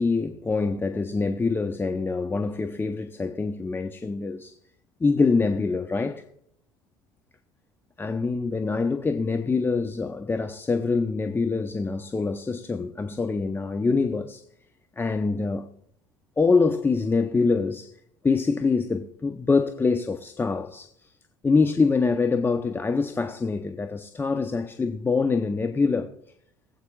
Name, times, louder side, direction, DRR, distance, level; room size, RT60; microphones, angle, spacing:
voice 1, 0.0-4.6 5.0-6.3 8.0-14.4 15.0-15.7 16.4-17.9 18.2-21.1 21.4-26.1, left 4 dB, 20° left, 0.7 m, -25 dB
21.5 x 8.2 x 2.4 m
hypercardioid pair, 65°, 11 cm